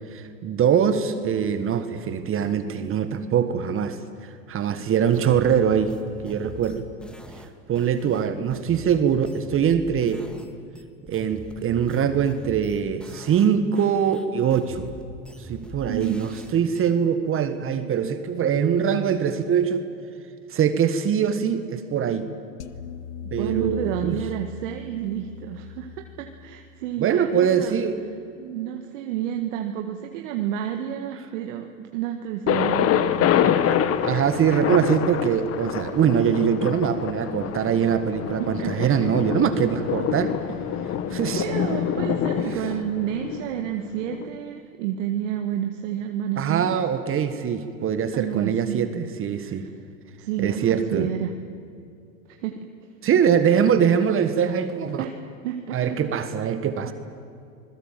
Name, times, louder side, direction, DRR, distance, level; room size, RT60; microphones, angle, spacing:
voice 1, 0.1-6.0 6.2-6.8 7.7-10.3 11.1-14.9 15.4-19.9 20.5-22.3 23.3-24.2 27.0-28.0 31.8-31.9 33.6-33.7 34.0-40.4 41.1-41.4 46.4-49.7 50.4-51.1 53.0-55.0 55.7-56.9, right 8 dB, 35° right, 10 dB, 1.5 m, -23 dB
sound 1, 5.1-10.5 10.7-13.5 13.7-16.8, equal, ahead, 2.1 m, -43 dB
voice 2, 15.9-16.2 23.4-27.8 28.4-33.3 33.7-34.1 38.4-38.9 40.2-40.3 40.7-46.7 48.1-48.9 49.5-49.7 50.2-51.3 52.3-52.6 55.0-56.0 56.9-57.0, right 10 dB, 65° right, 5 dB, 1.7 m, -30 dB
sound 2, 22.6-27.8, left 8 dB, 90° left, 1.3 m, -40 dB
Thunder, 32.5-44.3, left 9 dB, 35° left, 1.4 m, -26 dB
26.5 x 21.5 x 7.5 m, 2.5 s
hypercardioid pair, 105°, 40 cm